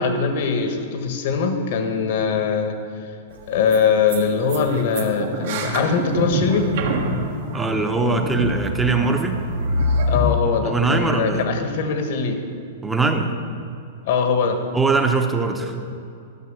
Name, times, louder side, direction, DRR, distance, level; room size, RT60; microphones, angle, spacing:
voice 1, 0.0-2.8 3.5-6.7 10.1-12.4 14.1-14.6, left 5 dB, 60° left, 6 dB, 1.4 m, -21 dB
sound 1, 3.3-3.4 3.7-3.8 4.1-4.2 4.5-10.3, equal, 65° right, 1.5 m, -25 dB
voice 2, 7.5-9.4 10.6-11.5 12.8-13.3 14.7-15.8, right 3 dB, 10° right, 5 dB, 0.9 m, -21 dB
12.5 x 5.9 x 7.4 m, 2.6 s
hypercardioid pair, 145°, 0 cm